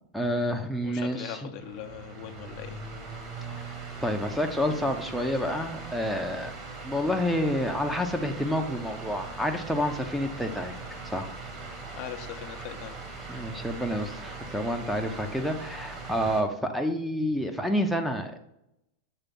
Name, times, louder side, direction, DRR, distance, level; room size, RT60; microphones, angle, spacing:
voice 1, 0.1-1.5 3.5-3.6 4.0-6.5 6.8-10.7 11.1-11.3 13.3-18.4, equal, ahead, 6 dB, 0.7 m, -29 dB
voice 2, 0.8-2.8 11.9-13.0, left 11 dB, 50° left, 6 dB, 0.7 m, -40 dB
sound 1, 1.6-16.4, right 3 dB, 35° right, 1.6 m, -40 dB
7.1 x 3.3 x 5.4 m, 0.84 s
hypercardioid pair, 110°, 0 cm